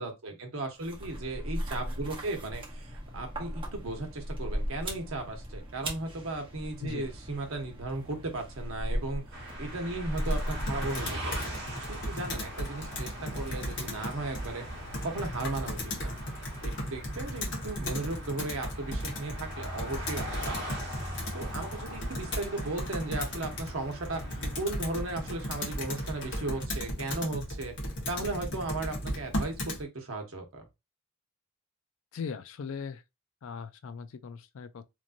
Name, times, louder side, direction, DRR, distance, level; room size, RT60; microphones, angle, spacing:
voice 1, 0.0-9.2 9.6-14.6 15.0-16.2 16.6-20.8 21.3-27.7 28.1-30.6, right 2 dB, 85° right, 0.9 m, -36 dB
sound 1, 0.8-11.2, equal, 25° right, 0.8 m, -37 dB
sound 2, 9.3-26.6, equal, 55° right, 1.0 m, -42 dB
Computer keyboard, 10.1-29.8, equal, 60° left, 1.1 m, -36 dB
voice 2, 32.1-33.0 33.4-34.9, left 5 dB, 80° left, 0.4 m, -39 dB
3.1 x 2.6 x 2.4 m
head